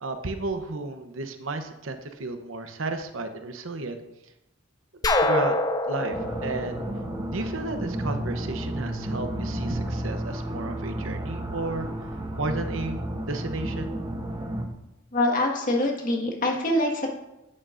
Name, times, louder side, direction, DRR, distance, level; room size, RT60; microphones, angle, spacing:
voice 1, 0.0-4.0 5.2-5.5 5.8-6.2 6.4-6.8 7.3-11.9 12.4-13.0 13.2-13.9, right 3 dB, 80° right, 7 dB, 0.9 m, -32 dB
sound 1, 5.0-7.8, left 2 dB, 20° left, 0.5 m, -26 dB
sound 2, 6.1-14.7, right 1 dB, 20° right, 0.8 m, -32 dB
voice 2, 15.1-17.1, left 1 dB, 40° left, 0 dB, 1.7 m, -24 dB
11.0 x 8.7 x 2.6 m, 0.91 s
head